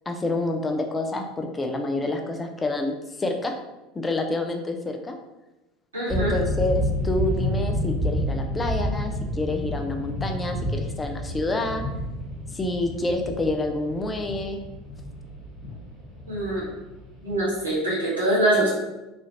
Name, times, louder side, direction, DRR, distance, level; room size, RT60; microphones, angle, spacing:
voice 1, 0.1-3.5 3.9-5.2 6.1-11.8 12.5-14.6, left 2 dB, 15° left, 4 dB, 0.3 m, -28 dB
voice 2, 5.9-6.3 16.3-16.6 17.2-18.7, right 1 dB, 80° right, -7 dB, 1.1 m, -23 dB
sound 1, 6.1-17.6, equal, 10° right, 1.1 m, -30 dB
3.0 x 2.4 x 2.7 m, 1.0 s
figure-of-eight pair, 70°, 0 cm